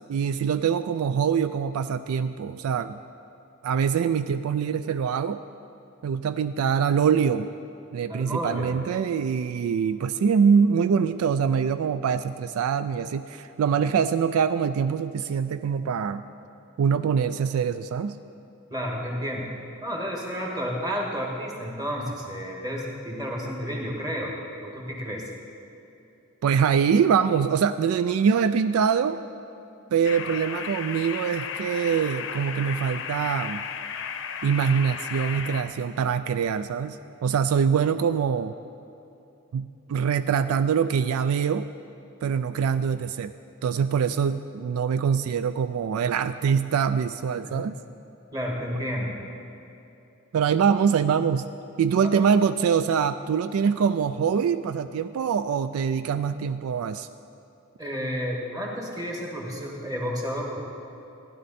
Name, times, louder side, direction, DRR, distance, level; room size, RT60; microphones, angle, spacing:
voice 1, 0.0-3.0 3.6-5.4 6.0-7.5 7.9-16.2 16.8-18.2 26.4-29.2 29.9-33.6 34.4-37.0 37.2-38.5 39.5-41.7 42.2-43.3 43.6-47.8 50.3-51.5 51.8-57.1, right 7 dB, 75° right, 11 dB, 0.3 m, -24 dB
voice 2, 8.1-8.8 18.7-19.5 19.8-24.3 24.6-25.3 47.4-47.7 48.3-49.2 52.0-52.1 57.8-60.6, equal, 20° right, -1 dB, 1.7 m, -31 dB
sound 1, 30.0-35.6, left 7 dB, 60° left, 0.7 m, -34 dB
15.5 x 10.5 x 4.2 m, 2.8 s
head